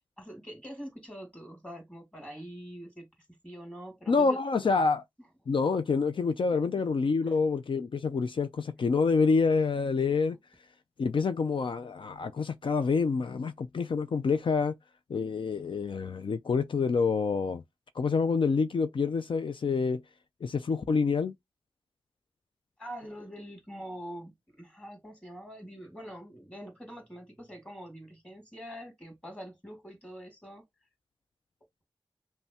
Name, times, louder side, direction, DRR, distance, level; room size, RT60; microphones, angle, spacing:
voice 1, 0.0-4.7 7.2-7.3 22.8-30.7, equal, 15° left, 2.1 m, -45 dB
voice 2, 4.1-5.0 5.5-10.4 11.0-14.8 15.1-17.6 18.0-20.0 20.4-21.3, left 4 dB, 75° left, 0.4 m, -27 dB
5.4 x 2.2 x 2.8 m
wide cardioid pair, 90°, 9 cm